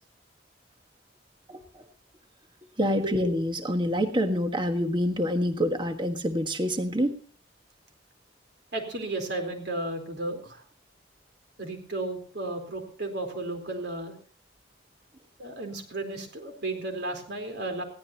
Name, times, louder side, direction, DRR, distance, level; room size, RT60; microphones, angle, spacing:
voice 1, 2.8-7.2, equal, 25° right, 6 dB, 1.4 m, -26 dB
voice 2, 8.7-10.6 11.6-14.1 15.4-17.8, right 2 dB, 60° right, 5 dB, 4.1 m, -33 dB
21.0 x 16.5 x 2.9 m, 0.42 s
head